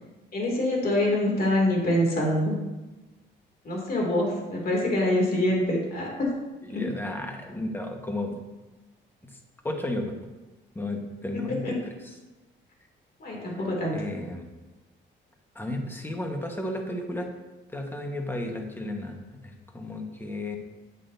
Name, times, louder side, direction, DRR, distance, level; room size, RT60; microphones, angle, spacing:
voice 1, 0.3-2.5 3.6-6.3 6.7-6.9 11.6-11.7 13.2-14.0, left 1 dB, 50° left, -1 dB, 2.6 m, -25 dB
voice 2, 6.6-8.4 9.6-10.1 10.7-11.8 12.0-12.1 13.5-14.5 15.5-17.3 17.7-20.6, left 1 dB, 10° left, 3 dB, 1.3 m, -33 dB
9.2 x 8.3 x 2.7 m, 1.1 s
cardioid pair, 90°, 20 cm